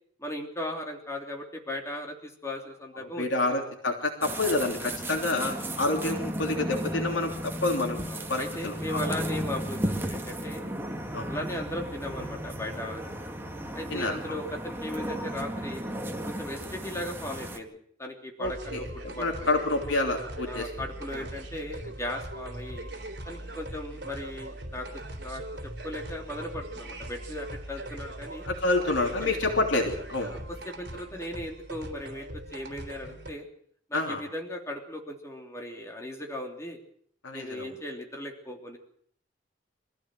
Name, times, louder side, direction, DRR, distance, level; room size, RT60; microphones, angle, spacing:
voice 1, 0.2-3.3 4.8-4.9 6.9-7.1 8.1-10.6 11.3-13.2 13.7-15.8 16.3-19.6 20.4-22.9 23.2-28.5 29.2-29.4 30.2-30.4 30.6-33.5 33.9-36.8 37.3-38.8, left 1 dB, 15° left, 2 dB, 3.1 m, -37 dB
voice 2, 3.0-8.0 8.3-9.0 11.1-11.3 13.9-14.1 18.4-20.7 21.1-21.3 28.4-30.3 33.9-34.2 37.2-37.7, left 2 dB, 80° left, 3 dB, 3.2 m, -28 dB
sound 1, 4.2-17.6, right 1 dB, 10° right, 1.9 m, -34 dB
sound 2, 18.4-33.3, right 1 dB, 60° right, 3.6 m, -40 dB
24.5 x 15.5 x 7.7 m, 0.64 s
head